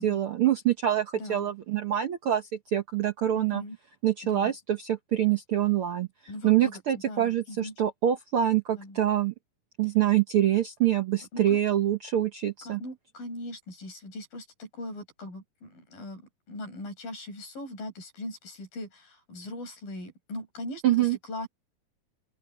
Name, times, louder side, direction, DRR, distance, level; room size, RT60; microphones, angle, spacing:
voice 1, 0.0-3.6 4.0-6.1 6.4-9.3 9.8-12.8 20.8-21.2, right 11 dB, 75° right, 1.2 m, -25 dB
voice 2, 1.1-1.5 3.3-3.8 4.2-4.5 6.3-6.8 7.1-7.7 8.7-9.0 11.3-11.6 12.6-16.2 16.5-21.5, left 1 dB, 90° left, 8.5 m, -40 dB
open air
omnidirectional pair, 3.9 m